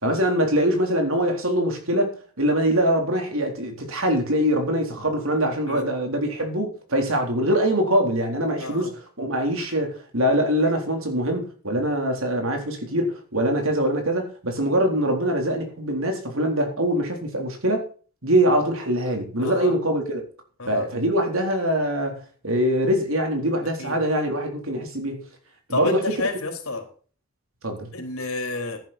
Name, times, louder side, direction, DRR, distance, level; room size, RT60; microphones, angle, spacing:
voice 1, 0.0-17.8 18.2-20.2 20.7-25.3 25.7-26.1 27.6-27.9, equal, 70° right, 3.8 m, -23 dB
voice 2, 8.6-8.9 19.4-19.7 20.6-20.9 23.8-24.0 25.7-26.9 27.9-28.8, left 2 dB, 75° left, 4.0 m, -30 dB
14.0 x 10.5 x 4.3 m
head